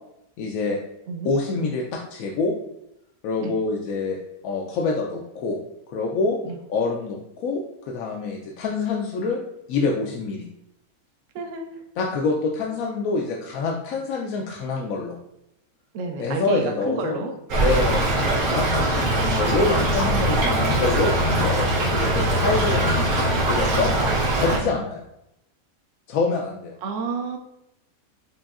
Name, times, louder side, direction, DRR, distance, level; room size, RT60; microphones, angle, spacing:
voice 1, 0.4-0.8 1.2-2.6 3.2-4.2 4.4-5.6 5.9-6.4 6.7-9.4 9.7-10.5 12.0-15.2 16.2-17.2 17.6-23.9 24.4-25.0 26.1-26.8, left 4 dB, 75° left, 0 dB, 1.0 m, -26 dB
voice 2, 11.3-11.7 15.9-17.3 24.6-24.8 26.8-27.4, right 3 dB, 65° right, 4 dB, 1.0 m, -30 dB
Stream / Trickle dribble, 17.5-24.6, right 1 dB, 85° right, 1.5 m, -22 dB
6.1 x 3.0 x 2.4 m, 0.82 s
omnidirectional pair, 1.5 m